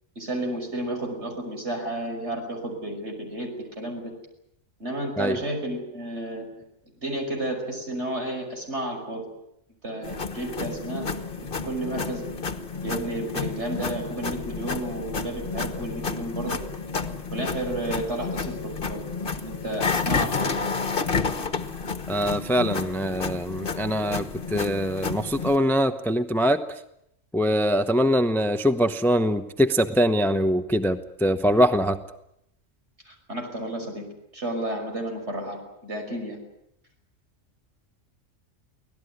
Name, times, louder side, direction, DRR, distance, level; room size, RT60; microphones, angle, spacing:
voice 1, 0.2-3.5 3.8-4.0 4.8-6.5 7.0-9.2 9.8-11.1 11.4-12.2 12.7-16.6 17.3-19.0 19.4-20.5 33.1-34.1 34.3-36.4, right 1 dB, 60° right, 3 dB, 6.2 m, -32 dB
sound 1, 10.0-25.6, left 4 dB, 45° left, 1.5 m, -30 dB
voice 2, 22.1-24.3 24.5-26.6 27.3-32.0, equal, ahead, 10 dB, 0.8 m, -23 dB
25.0 x 17.5 x 9.7 m, 0.78 s
omnidirectional pair, 1.3 m